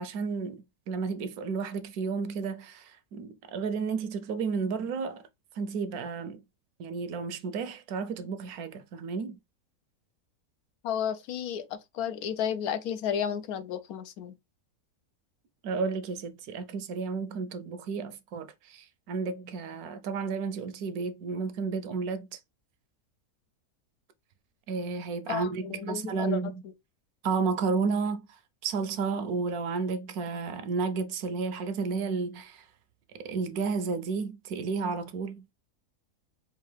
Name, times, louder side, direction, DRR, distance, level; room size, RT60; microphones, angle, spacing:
voice 1, 0.0-5.2 5.6-6.4 6.8-9.4 15.6-22.4 24.7-26.6 27.2-28.3 28.6-32.6 33.2-35.4, right 4 dB, 75° right, 1.1 m, -32 dB
voice 2, 10.8-14.3 25.3-26.4, left 8 dB, 80° left, 1.1 m, -32 dB
4.5 x 2.6 x 3.2 m
omnidirectional pair, 1.6 m